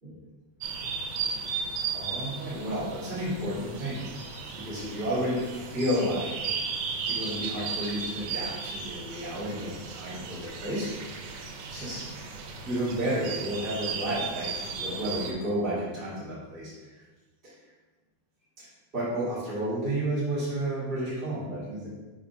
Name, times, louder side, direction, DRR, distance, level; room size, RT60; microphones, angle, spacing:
sound 1, 0.6-15.3, right 5 dB, 75° right, 2.0 m, -35 dB
voice 1, 1.2-1.6 1.9-4.0 4.6-6.5 7.1-10.9 11.7-12.1 12.6-16.9 17.4-17.5 18.6-18.7 18.9-21.9, right 1 dB, 20° right, -10 dB, 1.7 m, -31 dB
5.1 x 3.8 x 5.5 m, 1.2 s
omnidirectional pair, 3.6 m